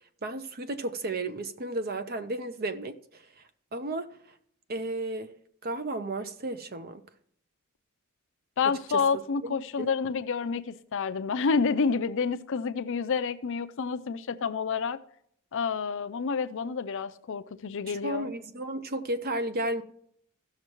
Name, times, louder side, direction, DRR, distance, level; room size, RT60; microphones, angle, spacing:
voice 1, 0.2-3.2 3.7-4.1 4.7-5.3 5.6-7.0 8.6-9.0 9.4-9.9 18.0-19.8, right 2 dB, 45° right, 0.8 m, -33 dB
voice 2, 8.6-15.0 15.5-18.3, left 5 dB, 60° left, 0.5 m, -29 dB
16.0 x 6.5 x 3.0 m
head